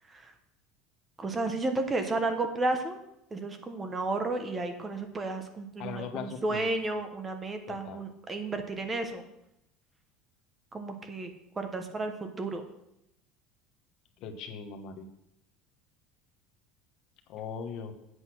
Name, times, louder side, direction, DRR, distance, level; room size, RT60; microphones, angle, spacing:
voice 1, 1.2-3.0 3.3-9.2 10.7-11.3 11.6-12.6, right 2 dB, 15° right, 6 dB, 0.9 m, -32 dB
voice 2, 5.8-6.7 7.7-8.0 14.2-15.1 17.3-17.9, left 6 dB, 50° left, 5 dB, 1.2 m, -39 dB
8.0 x 8.0 x 6.1 m, 0.83 s
cardioid pair, 160°, 0 cm